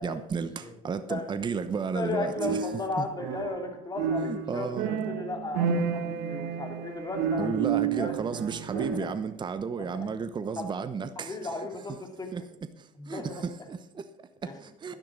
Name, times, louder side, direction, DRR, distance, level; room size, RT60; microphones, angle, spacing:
voice 1, 0.0-2.6 3.0-3.1 4.2-4.9 7.4-11.5 12.3-12.4 12.8-14.9, right 5 dB, 25° right, 0.9 m, -33 dB
voice 2, 1.9-7.5 8.0-8.1 8.7-9.1 9.8-10.1 10.6-10.7 11.2-12.5 12.9-13.4 14.4-14.6, left 3 dB, 20° left, 3.0 m, -35 dB
sound 1, 2.4-9.3, right 7 dB, 65° right, 1.4 m, -31 dB
12.0 x 10.0 x 6.2 m
hypercardioid pair, 80°, 18 cm